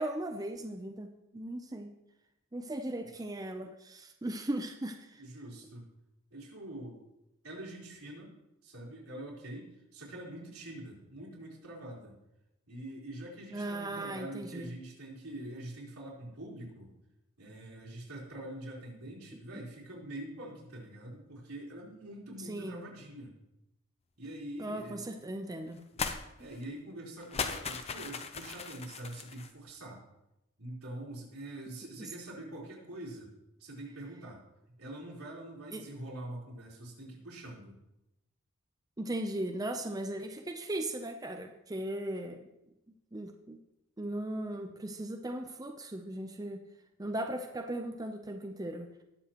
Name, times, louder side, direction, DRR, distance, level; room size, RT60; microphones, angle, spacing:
voice 1, 0.0-1.9 2.5-5.2 13.5-14.7 22.4-22.8 24.6-25.8 32.0-32.1 35.7-35.8 39.0-42.4 43.1-43.6 44.0-46.6 47.0-48.9, right 1 dB, 15° right, 4 dB, 0.5 m, -37 dB
voice 2, 5.2-5.9 6.3-7.0 7.4-8.3 8.6-12.2 12.7-16.9 17.4-23.3 24.2-25.0 25.9-26.0 26.4-30.0 30.6-33.3 33.6-34.4 34.8-37.8, right 1 dB, 85° right, -5 dB, 3.9 m, -45 dB
sound 1, 26.0-26.2 26.5-26.6 27.2-29.5, left 5 dB, 30° left, 0.6 m, -37 dB
19.0 x 7.0 x 3.0 m, 0.91 s
head